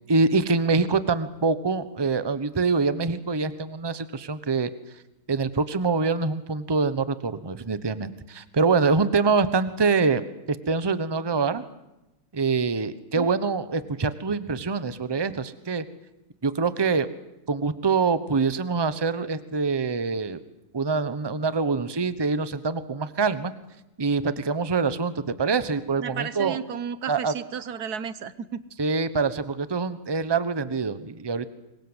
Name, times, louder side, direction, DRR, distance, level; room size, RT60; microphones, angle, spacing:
voice 1, 0.1-4.7 5.3-11.6 12.3-15.8 16.4-17.1 17.5-20.4 20.7-23.5 24.0-25.1 25.4-26.6 27.1-27.3 28.8-31.5, right 4 dB, 20° right, 13 dB, 0.7 m, -25 dB
voice 2, 26.0-28.6, right 7 dB, 55° right, 15 dB, 1.4 m, -33 dB
26.0 x 22.5 x 8.1 m, 0.95 s
omnidirectional pair, 2.3 m